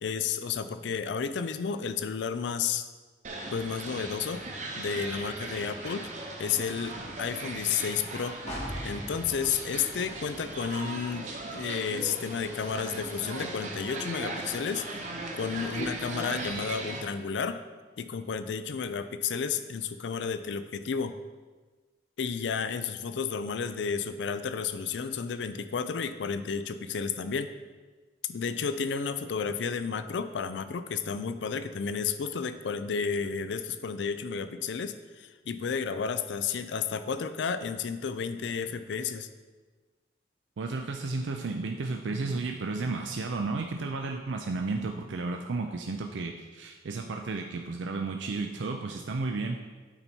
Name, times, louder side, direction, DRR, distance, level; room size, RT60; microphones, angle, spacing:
voice 1, 0.0-2.8 3.5-4.4 4.8-6.1 6.4-8.4 8.8-17.6 18.0-21.2 22.2-27.5 28.3-39.3, left 6 dB, 75° left, 11 dB, 0.4 m, -32 dB
sound 1, 3.2-17.0, right 2 dB, 40° right, 0.9 m, -38 dB
sound 2, 8.5-12.2 12.6-12.7, equal, 40° left, 1.4 m, -42 dB
voice 2, 40.6-49.6, right 3 dB, 85° right, 4 dB, 0.5 m, -33 dB
8.9 x 4.1 x 4.5 m, 1.3 s
head